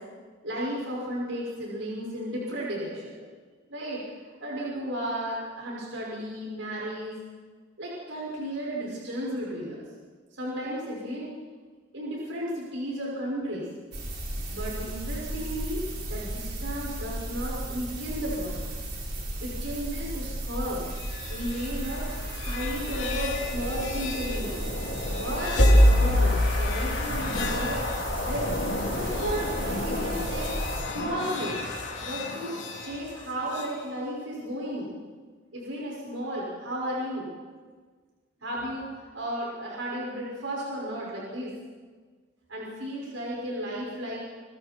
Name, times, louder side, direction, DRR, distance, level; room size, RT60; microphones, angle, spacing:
voice 1, 0.4-3.1 3.7-4.0 4.4-7.2 7.8-9.8 10.4-11.3 11.9-13.7 14.5-18.6 19.4-20.9 21.3-22.1 22.4-24.6 25.1-27.8 28.2-28.5 28.9-30.6 30.8-31.7 32.0-34.9 35.5-37.3 38.4-41.5 42.5-44.2, equal, 75° right, -4 dB, 6.2 m, -34 dB
sound 1, 13.9-30.8, right 1 dB, 60° right, 6.8 m, -34 dB
sound 2, 20.9-33.7, left 1 dB, 65° left, 3.4 m, -27 dB
28.5 x 25.0 x 4.6 m, 1.5 s
head